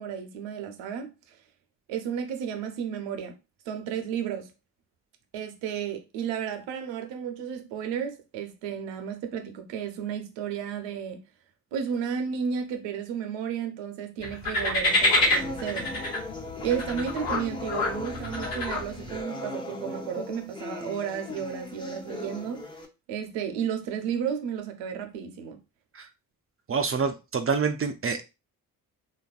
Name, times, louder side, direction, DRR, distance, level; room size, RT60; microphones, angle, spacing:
voice 1, 0.0-1.4 1.9-3.3 3.7-4.5 5.3-11.2 11.7-15.9 16.6-22.6 23.1-25.6, right 8 dB, 75° right, 0.7 m, -33 dB
sound 1, 14.2-19.2, left 2 dB, 80° left, 1.2 m, -27 dB
sound 2, 14.9-22.9, left 2 dB, 10° left, 0.7 m, -38 dB
voice 2, 26.7-28.2, right 5 dB, 30° right, 0.4 m, -27 dB
3.1 x 2.4 x 2.4 m
hypercardioid pair, 40°, 44 cm